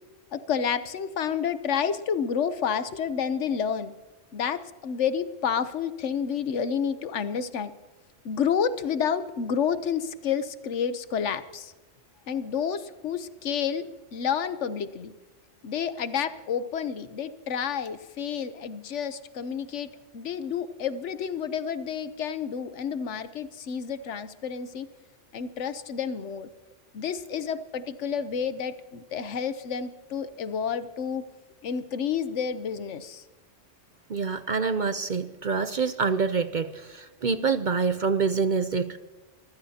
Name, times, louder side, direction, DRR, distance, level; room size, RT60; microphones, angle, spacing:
voice 1, 0.3-3.9 4.3-7.7 8.2-11.7 12.3-15.1 15.6-24.9 25.3-26.5 26.9-31.2 31.6-33.2, left 7 dB, 70° left, 13 dB, 1.1 m, -30 dB
voice 2, 34.1-39.0, right 5 dB, 50° right, 11 dB, 0.6 m, -26 dB
24.5 x 15.5 x 2.8 m, 1.2 s
omnidirectional pair, 1.3 m